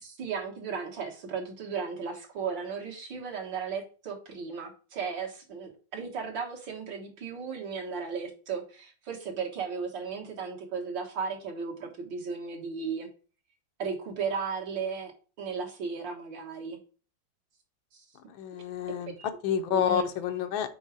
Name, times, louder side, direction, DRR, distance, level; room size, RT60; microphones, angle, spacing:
voice 1, 0.0-13.1 13.8-15.1 15.4-16.8 17.9-18.0 18.5-18.6 19.0-19.3 19.7-20.1, right 5 dB, 65° right, 0 dB, 2.1 m, -35 dB
voice 2, 18.3-19.1 19.4-20.7, left 8 dB, 75° left, 8 dB, 1.4 m, -29 dB
5.4 x 4.7 x 4.7 m, 0.38 s
omnidirectional pair, 2.2 m